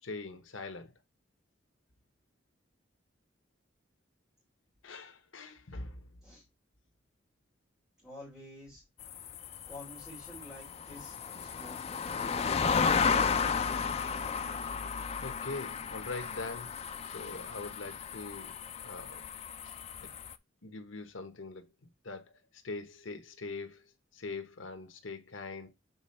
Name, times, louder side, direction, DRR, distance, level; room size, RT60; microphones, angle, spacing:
voice 1, 0.0-0.9 4.8-6.0 15.2-18.5 18.8-19.2 19.6-20.1 20.6-21.6 22.0-22.3 22.6-23.8 24.1-25.7, left 3 dB, 80° left, 1.0 m, -42 dB
voice 2, 8.0-8.8 9.7-12.9, left 1 dB, ahead, 2.8 m, -50 dB
sound 1, 9.0-20.3, left 5 dB, 30° left, 0.3 m, -33 dB
7.1 x 4.2 x 4.2 m
head